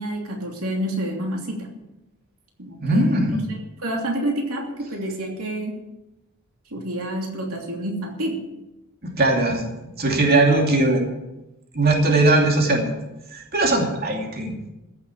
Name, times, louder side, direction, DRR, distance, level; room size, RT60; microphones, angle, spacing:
voice 1, 0.0-1.7 2.6-3.2 3.5-5.8 6.7-8.5 10.5-10.7, right 1 dB, 80° right, 0 dB, 3.0 m, -28 dB
voice 2, 2.8-3.5 9.0-9.7 10.0-11.0 11.7-12.9 13.3-14.6, right 2 dB, 45° right, 1 dB, 2.7 m, -19 dB
15.0 x 8.2 x 8.5 m, 0.96 s
head